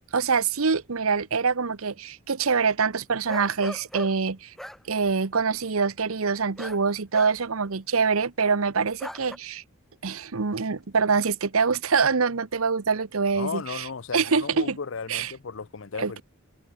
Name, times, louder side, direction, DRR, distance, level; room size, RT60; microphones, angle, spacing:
voice 1, 0.1-4.5 4.9-9.6 10.0-13.8 14.1-14.8 15.1-15.3 16.0-16.2, right 5 dB, 85° right, 0.9 m, -25 dB
sound 1, 3.3-4.2 4.6-4.8 6.6-6.8 7.1-7.5 9.0-9.4, equal, ahead, 2.8 m, -38 dB
voice 2, 13.3-16.2, left 5 dB, 65° left, 0.6 m, -35 dB
open air
head